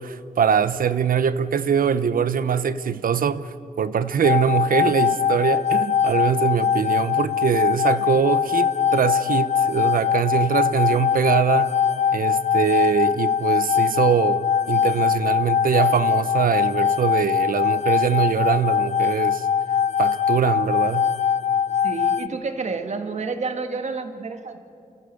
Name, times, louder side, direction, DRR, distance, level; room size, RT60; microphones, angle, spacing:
voice 1, 0.0-11.7 12.1-19.5 20.0-21.1, right 7 dB, 85° right, 0.8 m, -22 dB
sound 1, 4.2-22.3, left 8 dB, 55° left, 0.5 m, -22 dB
voice 2, 21.8-24.7, right 4 dB, 55° right, 1.7 m, -29 dB
28.5 x 14.0 x 8.3 m
wide cardioid pair, 170°, 14 cm